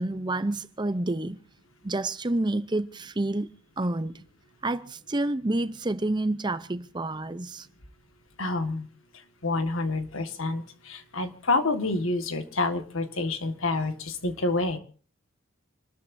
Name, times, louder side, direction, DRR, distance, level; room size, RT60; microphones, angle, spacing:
voice 1, 0.0-1.4 1.8-3.5 3.8-4.2 4.6-7.7, right 2 dB, 20° right, 0.7 m, -29 dB
voice 2, 8.4-8.9 9.4-14.8, left 2 dB, 90° left, 1.8 m, -28 dB
28.5 x 13.0 x 2.7 m
head